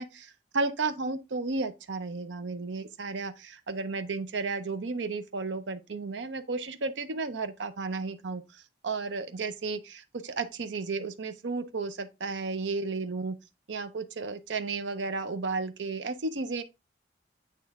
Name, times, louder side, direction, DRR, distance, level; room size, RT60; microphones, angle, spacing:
voice 1, 0.0-8.4 8.8-13.3 13.7-16.6, right 3 dB, 90° right, 0.6 m, -33 dB
8.3 x 3.4 x 3.5 m
head